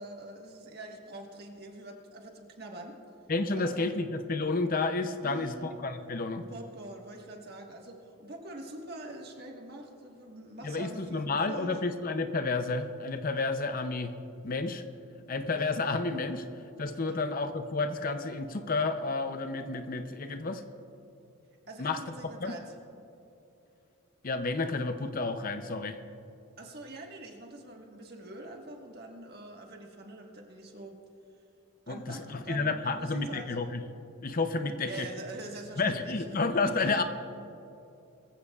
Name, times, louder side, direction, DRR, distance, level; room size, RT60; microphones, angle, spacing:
voice 1, 0.0-3.0 3.6-3.9 5.2-5.7 6.5-11.8 17.1-17.2 21.7-22.7 26.6-31.0 31.9-33.6 34.8-36.2 36.6-37.0, right 2 dB, 50° right, 1 dB, 1.5 m, -44 dB
voice 2, 3.3-6.4 10.6-14.1 14.4-14.8 15.3-16.4 16.8-20.6 21.8-22.0 22.4-22.6 24.2-26.0 31.9-33.8 34.2-35.1 35.8-37.0, left 3 dB, 40° left, 8 dB, 0.6 m, -31 dB
22.0 x 15.0 x 2.4 m, 2.8 s
head